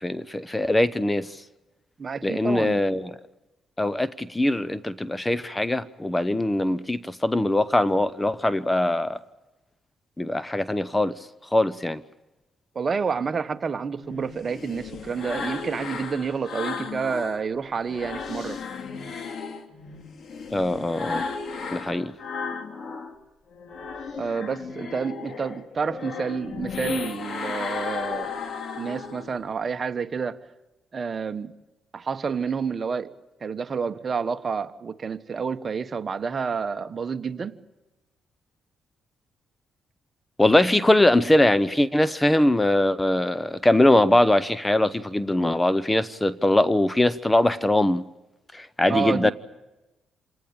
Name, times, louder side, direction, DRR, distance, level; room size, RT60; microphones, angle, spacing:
voice 1, 0.0-1.3 2.2-3.1 3.8-9.2 10.2-11.2 11.5-12.0 20.5-21.2 21.7-22.1 40.4-48.0 48.5-49.3, left 1 dB, 10° left, 0.8 m, -22 dB
voice 2, 2.0-2.8 12.7-18.6 24.1-28.3 28.8-30.4 30.9-31.5 31.9-33.1 33.4-37.5 48.9-49.3, right 5 dB, 40° right, 1.3 m, -29 dB
sound 1, 14.0-17.4 17.8-23.2 23.5-29.4, left 5 dB, 55° left, 2.6 m, -34 dB
27.5 x 19.0 x 8.8 m
cardioid pair, 90°, 0 cm